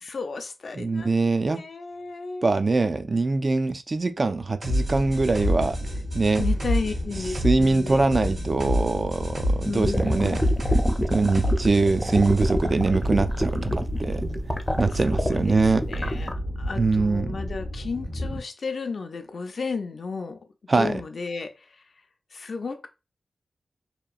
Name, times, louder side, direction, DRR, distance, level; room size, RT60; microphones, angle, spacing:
voice 1, 0.0-2.5 6.4-8.0 9.6-10.5 14.9-20.5 20.7-21.9 22.3-22.9, left 4 dB, 70° left, 0.4 m, -34 dB
voice 2, 0.8-1.6 2.4-5.8 6.1-6.4 7.4-10.4 11.1-14.2 14.8-15.8 16.8-17.3 20.7-20.9, right 3 dB, 45° right, 0.3 m, -23 dB
sound 1, 4.6-18.4, equal, 70° right, 1.2 m, -32 dB
sound 2, 4.6-12.5, equal, 85° right, 1.5 m, -28 dB
sound 3, 9.8-16.3, equal, 10° left, 0.5 m, -27 dB
2.9 x 2.3 x 2.3 m
cardioid pair, 60°, 0 cm